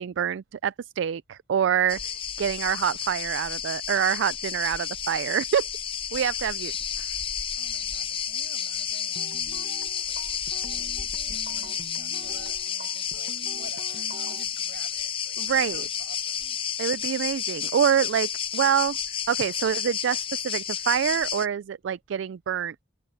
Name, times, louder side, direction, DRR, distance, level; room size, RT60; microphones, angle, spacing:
voice 1, 0.0-5.6 6.1-6.7 7.0-7.1 15.4-15.8 16.8-19.0 19.3-22.8, right 8 dB, 85° right, 0.3 m, -26 dB
sound 1, 1.9-21.5, left 8 dB, 30° left, 0.5 m, -31 dB
voice 2, 7.6-9.3 10.1-16.7, right 3 dB, 65° right, 7.8 m, -50 dB
sound 2, 9.2-14.4, right 3 dB, 45° right, 1.1 m, -45 dB
head